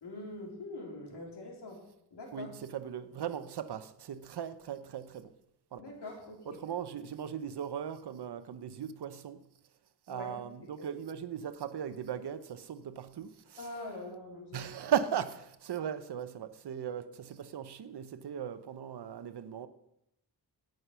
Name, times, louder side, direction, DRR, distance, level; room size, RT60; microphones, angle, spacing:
voice 1, 0.0-1.8 2.1-2.5 5.8-6.6 10.1-10.9 13.6-14.7, left 2 dB, 90° left, 3.4 m, -44 dB
voice 2, 2.3-5.3 5.7-5.8 6.5-9.4 10.1-13.8 14.5-19.7, right 8 dB, 80° right, 0.9 m, -38 dB
17.0 x 6.6 x 5.7 m
wide cardioid pair, 130°, 39 cm